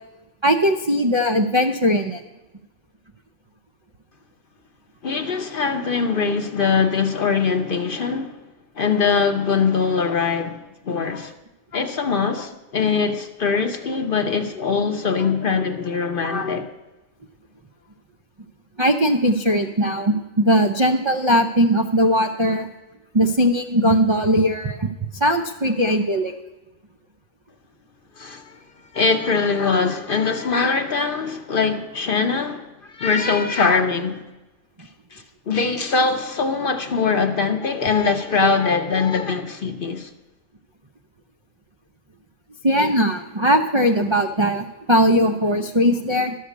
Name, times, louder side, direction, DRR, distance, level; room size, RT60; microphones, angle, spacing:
voice 1, 0.4-2.2 18.8-22.7 23.1-24.9 25.1-26.3 42.6-46.3, equal, 50° right, 0.3 m, -19 dB
voice 2, 5.0-8.4 8.8-11.3 11.7-16.7 28.2-28.6 28.9-34.3 35.1-40.1, left 5 dB, 50° left, 0.7 m, -22 dB
12.5 x 6.5 x 8.2 m
omnidirectional pair, 1.5 m